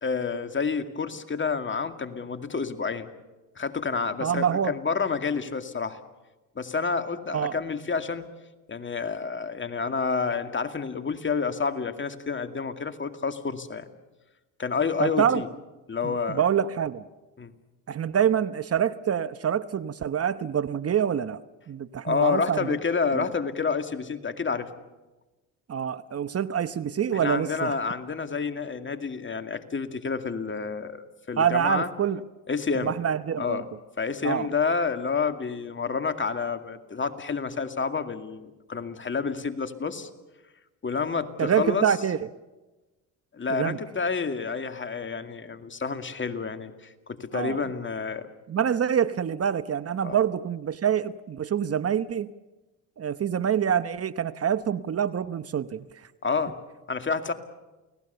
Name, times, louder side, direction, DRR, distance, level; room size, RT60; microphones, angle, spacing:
voice 1, 0.0-3.1 3.6-6.0 6.6-8.3 8.7-13.9 14.6-15.5 15.9-16.4 17.4-17.5 22.0-24.7 27.1-31.9 32.5-32.9 33.4-33.6 34.0-40.1 40.8-41.8 43.3-48.3 50.0-50.2 56.2-56.6 56.9-57.3, left 5 dB, 30° left, 8 dB, 2.3 m, -29 dB
voice 2, 4.2-4.8 7.3-7.6 15.0-15.4 16.0-17.0 17.9-21.4 21.7-22.7 23.1-23.2 25.7-27.7 31.4-32.2 32.7-33.6 34.2-34.5 41.4-42.3 43.5-43.8 47.3-47.6 48.5-52.3 53.0-55.9, right 8 dB, 40° right, 14 dB, 0.9 m, -26 dB
29.5 x 18.5 x 6.9 m, 1.1 s
supercardioid pair, 65°, 36 cm